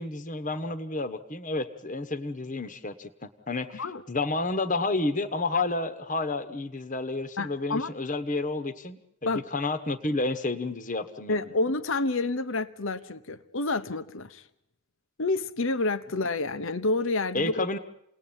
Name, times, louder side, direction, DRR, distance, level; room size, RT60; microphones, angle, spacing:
voice 1, 0.0-11.4 17.3-17.8, left 2 dB, 35° left, 9 dB, 1.3 m, -30 dB
voice 2, 7.4-7.9 9.3-9.4 11.3-14.4 15.2-17.7, left 2 dB, 60° left, 12 dB, 1.0 m, -29 dB
29.0 x 19.5 x 9.0 m, 0.79 s
head